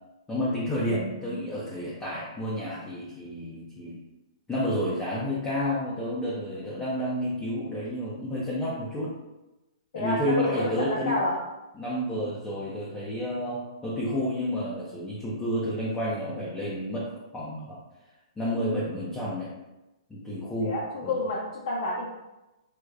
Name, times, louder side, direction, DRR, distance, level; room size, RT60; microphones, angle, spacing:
voice 1, 0.3-4.0 4.5-9.1 9.9-11.2 11.8-17.1 17.3-17.8 18.4-19.5 20.1-20.7 21.0-21.2, equal, 10° left, -7 dB, 0.4 m, -30 dB
voice 2, 0.9-1.4 9.9-11.3 20.6-22.1, left 1 dB, 60° left, -4 dB, 0.6 m, -30 dB
4.7 x 2.1 x 2.3 m, 1.0 s
hypercardioid pair, 165°, 3 cm